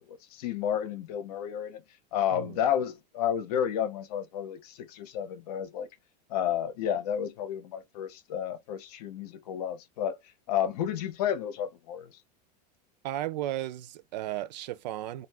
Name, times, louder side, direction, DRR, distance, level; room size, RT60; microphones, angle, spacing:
voice 1, 0.1-1.8 2.1-5.9 6.3-10.2 10.5-12.2, left 9 dB, 65° left, 0.9 m, -31 dB
voice 2, 13.0-15.3, right 13 dB, 80° right, 0.5 m, -34 dB
2.4 x 2.3 x 3.4 m
supercardioid pair, 160°, 21 cm